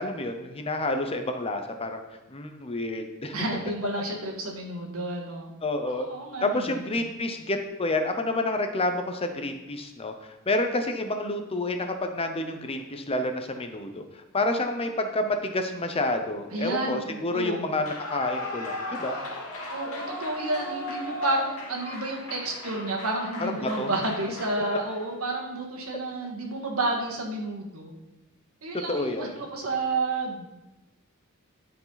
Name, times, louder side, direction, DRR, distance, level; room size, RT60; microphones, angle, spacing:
voice 1, 0.0-3.4 5.6-6.1 6.4-19.2 23.4-23.9 28.9-29.4, left 2 dB, 25° left, 6 dB, 0.7 m, -29 dB
voice 2, 3.3-5.5 5.8-6.8 16.5-17.7 19.7-27.9 28.6-30.5, right 2 dB, 75° right, 1 dB, 1.7 m, -31 dB
Clapping / Cheering / Applause, 17.7-25.1, left 1 dB, 80° left, 2.4 m, -37 dB
12.0 x 4.9 x 4.0 m, 0.97 s
head